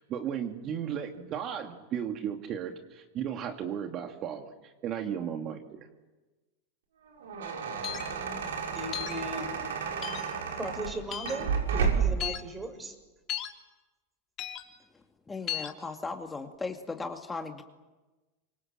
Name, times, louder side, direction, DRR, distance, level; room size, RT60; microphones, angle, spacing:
voice 1, 0.0-5.9, right 9 dB, 45° right, 4 dB, 2.5 m, -35 dB
sound 1, 7.0-12.3, right 6 dB, 80° right, 6.4 m, -31 dB
sound 2, 7.8-8.1 8.9-9.2 10.0-10.3 11.1-11.4 12.2-12.4 13.3-13.5 14.4-14.6 15.5-15.7, left 12 dB, 40° left, 3.5 m, -35 dB
voice 2, 8.4-9.6 10.6-13.0, right 1 dB, 15° right, 8 dB, 6.3 m, -38 dB
voice 3, 14.9-17.6, left 3 dB, 15° left, 4 dB, 2.3 m, -37 dB
28.5 x 25.5 x 7.7 m, 1.2 s
hypercardioid pair, 95°, 0 cm